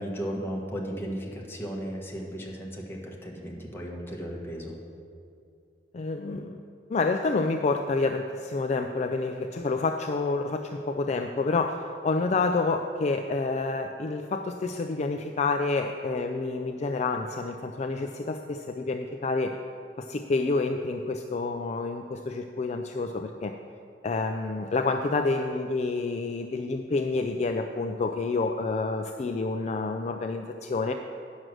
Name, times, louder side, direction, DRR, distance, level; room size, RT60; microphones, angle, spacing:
voice 1, 0.0-4.8, equal, 15° left, -2 dB, 1.3 m, -35 dB
voice 2, 5.9-6.6 6.9-19.6 20.0-23.5 24.0-30.9, left 3 dB, 40° left, 5 dB, 0.4 m, -28 dB
9.2 x 6.3 x 6.2 m, 2.5 s
head